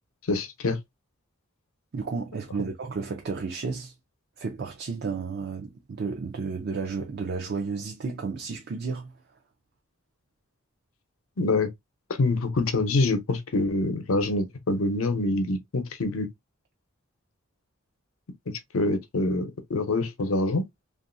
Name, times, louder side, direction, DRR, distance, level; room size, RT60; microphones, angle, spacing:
voice 1, 0.3-0.8 11.4-11.7 12.2-16.3 18.7-20.6, left 2 dB, 90° left, 0.7 m, -25 dB
voice 2, 1.9-3.9 4.4-9.1, right 4 dB, 50° right, 0.5 m, -32 dB
3.0 x 2.4 x 2.5 m
head